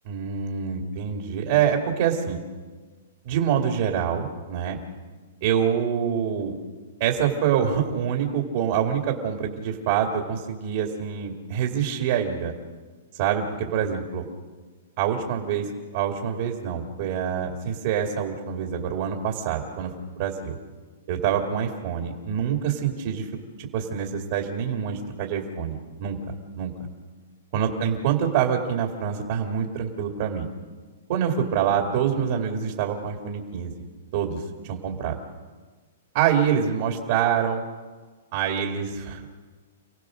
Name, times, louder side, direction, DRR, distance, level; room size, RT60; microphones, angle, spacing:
voice 1, 0.0-2.4 3.2-4.8 5.4-6.5 7.0-12.5 13.1-14.2 15.0-20.6 21.1-23.3 23.6-26.7 27.5-30.5 31.1-33.7 34.1-35.2 36.1-37.6 38.3-39.2, right 8 dB, 40° right, 2 dB, 2.6 m, -26 dB
29.0 x 17.5 x 6.5 m, 1.4 s
hypercardioid pair, 165°, 0 cm